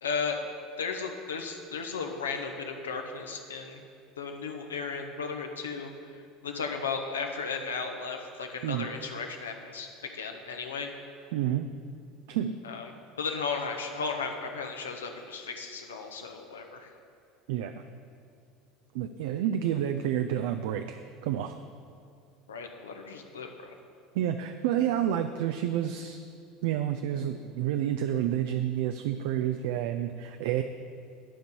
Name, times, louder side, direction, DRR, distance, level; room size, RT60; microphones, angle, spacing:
voice 1, 0.0-0.4 0.8-3.8 4.2-10.9 12.6-12.9 13.2-16.9 22.5-23.7, left 5 dB, 75° left, 4 dB, 0.9 m, -35 dB
voice 2, 11.3-11.7 12.3-12.6 17.5-17.8 18.9-21.5 24.1-26.2 26.6-30.6, right 10 dB, 60° right, 7 dB, 0.4 m, -29 dB
10.5 x 5.2 x 7.0 m, 2.3 s
figure-of-eight pair, 70°, 0 cm